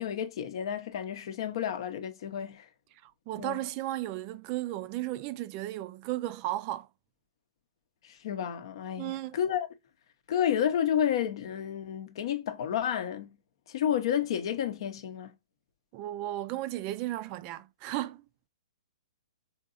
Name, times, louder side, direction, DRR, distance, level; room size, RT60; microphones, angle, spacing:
voice 1, 0.0-2.7 3.4-3.6 8.0-9.7 10.3-13.4 13.7-15.3, left 9 dB, 60° left, 0.6 m, -31 dB
voice 2, 2.9-6.9 9.0-9.4 15.9-18.2, right 15 dB, 35° right, 0.3 m, -35 dB
3.7 x 2.8 x 2.4 m
hypercardioid pair, 125°, 3 cm